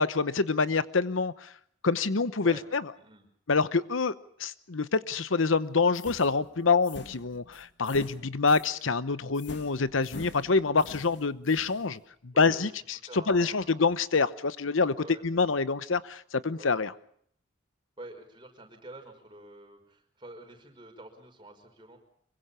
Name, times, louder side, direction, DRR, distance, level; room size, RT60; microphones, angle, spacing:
voice 1, 0.0-1.5 1.8-2.9 3.5-4.1 4.4-15.0 15.2-16.9, left 4 dB, 85° left, 15 dB, 1.0 m, -26 dB
sound 1, 5.9-8.8 9.3-11.8, left 2 dB, 60° left, 2.3 m, -46 dB
voice 2, 12.3-12.7 13.0-13.8 14.9-15.2 16.6-16.8 18.0-22.0, right 1 dB, 25° right, 3 dB, 5.5 m, -47 dB
25.5 x 23.0 x 5.7 m, 0.64 s
head